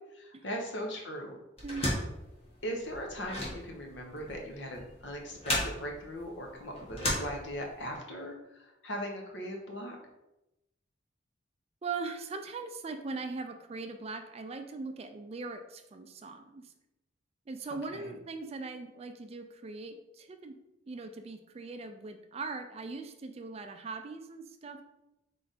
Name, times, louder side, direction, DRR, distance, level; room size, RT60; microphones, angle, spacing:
voice 1, 0.1-1.4 2.6-10.0 17.9-18.1, equal, 65° left, 1 dB, 0.9 m, -39 dB
sound 1, 1.6-7.9, left 1 dB, 30° left, 1.3 m, -35 dB
voice 2, 1.6-2.0 11.8-16.7 17.5-20.6 20.9-24.8, right 4 dB, 30° right, 7 dB, 0.4 m, -40 dB
3.8 x 3.3 x 4.1 m, 0.93 s
head